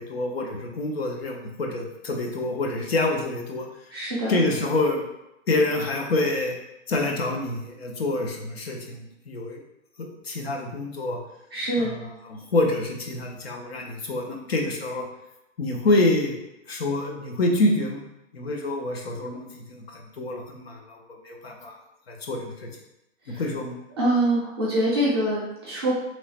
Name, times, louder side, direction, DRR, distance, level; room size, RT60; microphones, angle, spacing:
voice 1, 0.0-3.7 4.3-5.0 5.5-6.5 6.9-9.6 10.0-11.2 11.8-15.1 15.6-16.4 16.7-18.0 18.3-21.8 22.1-22.7 23.3-23.7, left 2 dB, 50° left, 1 dB, 0.6 m, -27 dB
voice 2, 3.9-4.4 11.5-11.9 23.3-23.4 24.0-26.0, right 1 dB, 20° right, -7 dB, 0.6 m, -24 dB
3.0 x 2.1 x 4.0 m, 0.89 s
hypercardioid pair, 170°, 39 cm